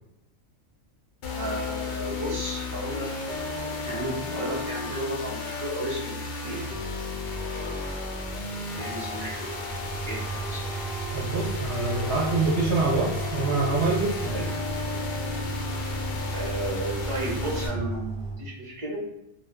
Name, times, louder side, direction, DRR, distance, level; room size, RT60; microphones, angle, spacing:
sound 1, 1.2-17.7, left 3 dB, 70° left, 0.4 m, -33 dB
voice 1, 1.3-6.6 7.5-8.3 8.8-9.6 10.0-10.8 12.1-12.4 16.3-19.1, right 1 dB, 30° right, -3 dB, 0.7 m, -34 dB
sound 2, 9.6-18.4, right 3 dB, 10° left, 0.4 m, -34 dB
voice 2, 11.1-14.5, right 3 dB, 60° right, -4 dB, 0.9 m, -26 dB
2.4 x 2.3 x 3.4 m, 0.85 s
omnidirectional pair, 1.4 m